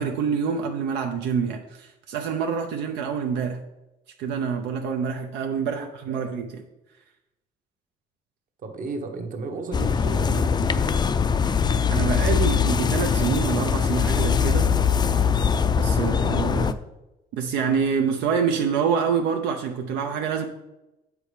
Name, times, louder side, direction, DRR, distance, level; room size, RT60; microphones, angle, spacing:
voice 1, 0.0-3.6 4.2-6.6 11.9-14.7 15.8-16.7 17.3-20.4, right 6 dB, 90° right, 3 dB, 0.8 m, -26 dB
voice 2, 5.7-6.3 8.6-11.0 16.5-16.7, right 3 dB, 55° right, 5 dB, 1.2 m, -34 dB
sound 1, 9.7-16.7, left 6 dB, 25° left, 0.4 m, -22 dB
7.5 x 4.9 x 5.0 m, 0.95 s
cardioid pair, 110°, 17 cm